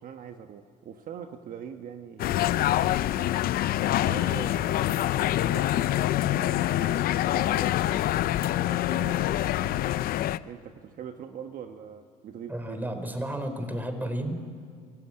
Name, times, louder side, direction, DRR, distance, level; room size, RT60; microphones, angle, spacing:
voice 1, 0.0-3.0 3.9-10.0 10.4-13.0, right 8 dB, 50° right, 6 dB, 1.4 m, -43 dB
sound 1, 2.2-10.4, left 14 dB, 55° left, 0.7 m, -25 dB
voice 2, 12.5-14.4, right 1 dB, 10° right, 8 dB, 4.0 m, -32 dB
28.0 x 16.0 x 8.8 m, 2.2 s
supercardioid pair, 95°, 18 cm